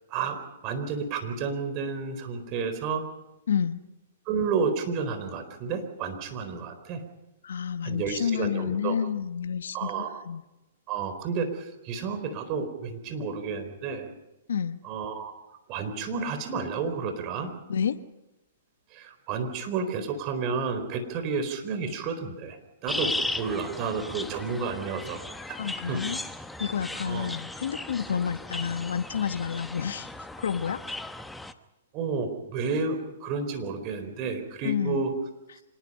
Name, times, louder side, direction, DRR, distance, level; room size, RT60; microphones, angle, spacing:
voice 1, 0.1-3.1 4.3-7.0 7.8-9.0 9.7-10.2 10.9-14.1 14.8-15.3 15.7-17.5 18.9-25.2 25.9-26.1 27.1-27.3 31.9-35.1, right 5 dB, 35° right, 8 dB, 4.1 m, -31 dB
voice 2, 3.5-3.8 7.4-10.4 14.5-14.8 17.7-17.9 25.6-26.2 26.6-30.1 30.4-30.8 34.6-35.0, left 7 dB, 75° left, 10 dB, 1.2 m, -29 dB
sound 1, 22.9-31.5, left 2 dB, 5° left, 1.0 m, -36 dB
26.0 x 20.5 x 5.5 m, 0.96 s
hypercardioid pair, 130°, 0 cm